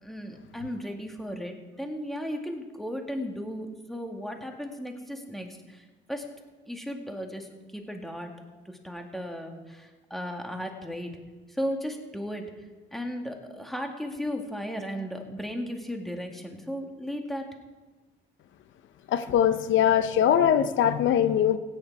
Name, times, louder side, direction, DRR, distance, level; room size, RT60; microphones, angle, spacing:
voice 1, 0.0-6.3 6.7-8.3 8.7-11.1 11.5-12.5 12.9-17.5, equal, ahead, 3 dB, 2.0 m, -35 dB
voice 2, 19.1-21.6, left 9 dB, 75° left, 10 dB, 0.7 m, -22 dB
16.0 x 9.7 x 4.8 m, 1.2 s
cardioid pair, 90°, 20 cm